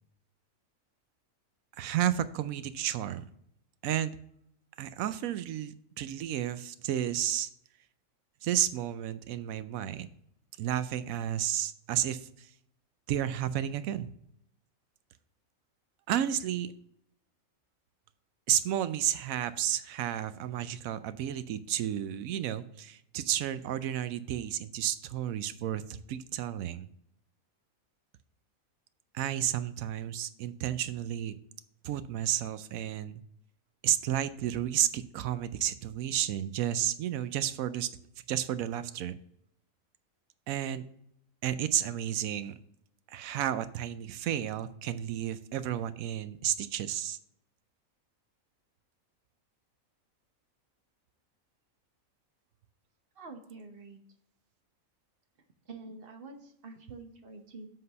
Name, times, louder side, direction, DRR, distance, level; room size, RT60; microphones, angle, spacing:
voice 1, 1.8-3.2 3.8-4.2 4.8-7.5 8.4-10.1 10.6-12.5 13.1-14.1 16.1-16.7 18.5-26.9 29.1-31.3 31.8-33.2 33.8-37.9 38.3-39.2 40.5-40.9 41.4-42.5 43.1-47.2, right 11 dB, 80° right, 13 dB, 1.0 m, -32 dB
voice 2, 53.2-54.0 55.7-57.7, right 3 dB, 45° right, 5 dB, 1.1 m, -47 dB
7.5 x 3.9 x 6.6 m, 0.72 s
omnidirectional pair, 1.4 m